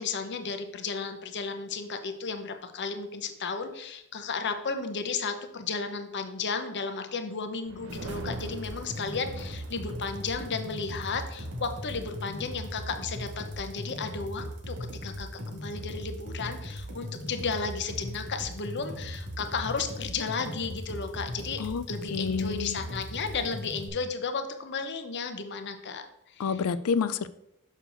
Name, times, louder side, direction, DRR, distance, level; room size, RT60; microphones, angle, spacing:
voice 1, 0.0-14.8 15.0-26.6, left 5 dB, 55° left, 7 dB, 0.8 m, -34 dB
sound 1, 7.6-13.1, right 3 dB, 60° right, 0.6 m, -45 dB
sound 2, 7.9-23.9, equal, 80° right, 2.1 m, -38 dB
voice 2, 22.1-22.8 26.4-27.3, left 5 dB, 80° left, 15 dB, 0.4 m, -28 dB
6.5 x 6.4 x 3.9 m, 0.80 s
head